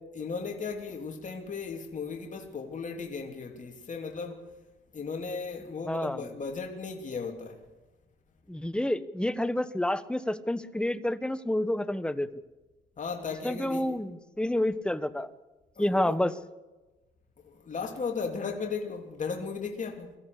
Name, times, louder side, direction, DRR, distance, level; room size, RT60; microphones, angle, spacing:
voice 1, 0.1-4.5 4.9-7.6 13.0-13.9 15.8-16.1 17.4-20.2, left 5 dB, 40° left, 3.2 m, -36 dB
voice 2, 5.8-6.3 8.5-12.3 13.4-15.3 15.8-16.3, left 1 dB, 5° left, 1.1 m, -29 dB
23.5 x 14.5 x 8.2 m
cardioid pair, 90°, 20 cm